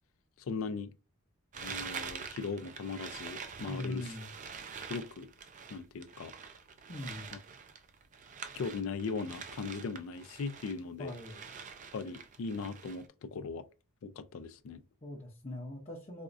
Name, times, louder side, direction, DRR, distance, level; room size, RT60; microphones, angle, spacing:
voice 1, 0.4-0.9 1.6-4.1 4.9-5.3 5.7-6.3 8.6-11.1 11.9-13.7 14.0-14.8, left 4 dB, 65° left, 0.4 m, -39 dB
sound 1, 1.5-10.8 11.1-13.1, right 6 dB, 35° right, 0.4 m, -45 dB
voice 2, 3.7-4.3 6.9-7.4 11.0-11.5 15.0-16.2, left 1 dB, 30° left, 0.7 m, -41 dB
4.2 x 2.3 x 2.5 m
head